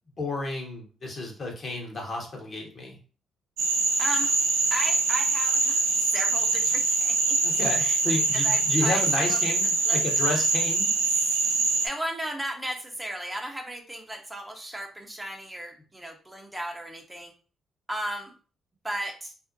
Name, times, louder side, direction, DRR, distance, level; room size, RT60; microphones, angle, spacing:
voice 1, 0.2-3.0 7.4-10.9, left 2 dB, 45° left, 0 dB, 0.9 m, -31 dB
Frog, 3.6-11.9, right 3 dB, 80° right, 0.4 m, -24 dB
voice 2, 4.7-7.4 7.8-9.4 9.9-10.0 11.8-17.3 17.9-18.3 18.8-19.3, right 1 dB, 15° right, 2 dB, 0.6 m, -35 dB
2.5 x 2.0 x 2.6 m, 0.38 s
hypercardioid pair, 40°, 0 cm